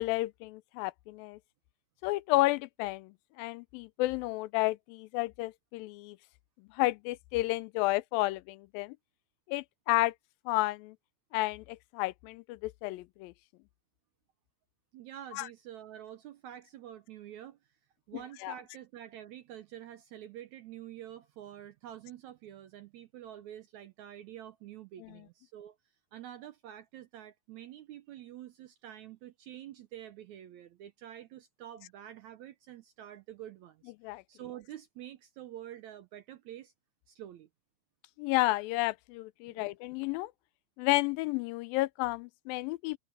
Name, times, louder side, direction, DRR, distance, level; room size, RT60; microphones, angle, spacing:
voice 1, 0.0-1.4 2.0-6.2 6.7-9.0 9.5-10.1 10.5-11.0 11.3-13.3 15.3-15.5 18.4-18.5 25.0-25.2 34.0-34.2 38.2-40.3 40.8-43.0, left 19 dB, 85° left, 2.3 m, -31 dB
voice 2, 14.9-17.8 18.1-25.8 26.1-33.9 34.3-36.7 37.1-37.5 39.5-39.7, right 11 dB, 75° right, 1.7 m, -47 dB
omnidirectional pair, 4.1 m